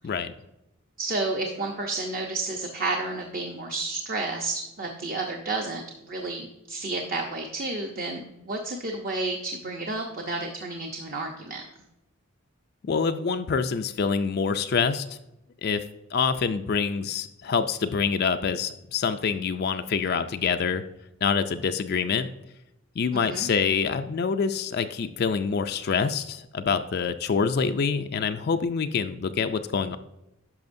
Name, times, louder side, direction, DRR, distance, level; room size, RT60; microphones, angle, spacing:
voice 1, 1.0-11.6 23.1-23.5, right 2 dB, 40° right, 2 dB, 0.7 m, -31 dB
voice 2, 12.8-15.2 15.6-15.8 16.1-20.8 21.2-22.3 23.0-30.0, left 5 dB, 45° left, 8 dB, 0.4 m, -26 dB
10.5 x 6.1 x 2.6 m, 0.90 s
head